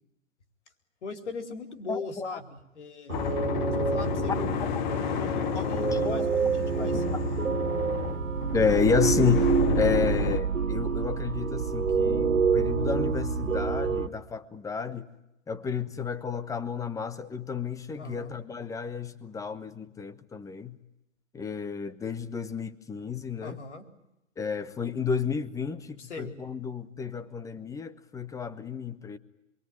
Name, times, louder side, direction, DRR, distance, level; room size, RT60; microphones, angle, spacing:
voice 1, 1.0-3.3 3.8-4.5 5.1-7.0 18.0-18.3 23.4-23.9 26.0-26.3, left 3 dB, 60° left, 4.3 m, -39 dB
voice 2, 1.9-2.3 5.6-5.7 6.0-6.3 6.8-7.0 8.5-9.5 9.8-15.1 15.5-20.8 21.3-23.6 24.4-29.2, left 6 dB, 10° left, 1.2 m, -31 dB
sound 1, 3.1-10.4, left 11 dB, 35° left, 1.2 m, -32 dB
sound 2, 3.1-14.1, right 5 dB, 80° right, 1.6 m, -27 dB
27.5 x 23.0 x 9.3 m
figure-of-eight pair, 120°, 39 cm